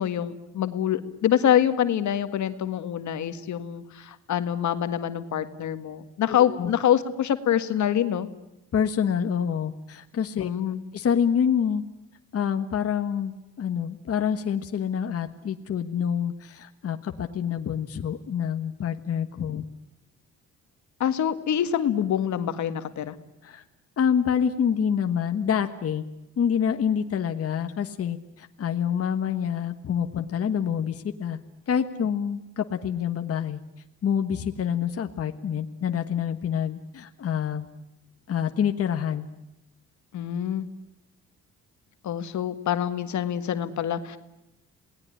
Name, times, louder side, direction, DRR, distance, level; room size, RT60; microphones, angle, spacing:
voice 1, 0.0-8.3 10.4-10.8 21.0-23.1 40.1-40.7 42.0-44.2, left 10 dB, 70° left, 10 dB, 1.8 m, -25 dB
voice 2, 6.3-6.7 8.7-10.5 10.9-11.8 12.3-19.6 23.4-23.6 24.0-26.0 26.4-31.4 31.7-33.6 34.0-37.7 38.3-39.3, left 8 dB, 50° left, 6 dB, 1.5 m, -27 dB
28.0 x 19.0 x 10.0 m, 0.94 s
cardioid pair, 90°, 30 cm